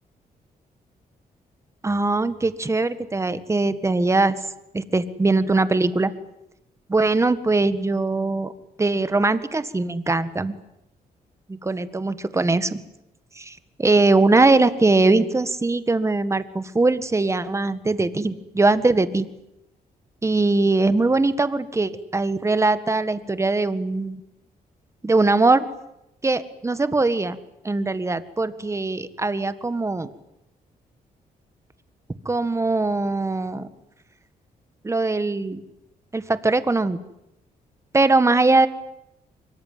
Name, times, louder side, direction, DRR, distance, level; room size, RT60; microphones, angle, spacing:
voice 1, 1.8-4.4 4.7-6.1 6.9-8.5 8.8-10.6 11.5-12.8 13.3-19.2 20.2-24.2 25.0-25.6 26.2-27.4 27.6-30.1 32.2-33.7 34.8-35.6 36.1-37.0 37.9-38.7, right 3 dB, 20° right, 13 dB, 1.6 m, -21 dB
25.0 x 23.5 x 9.4 m, 0.85 s
cardioid pair, 120°, 16 cm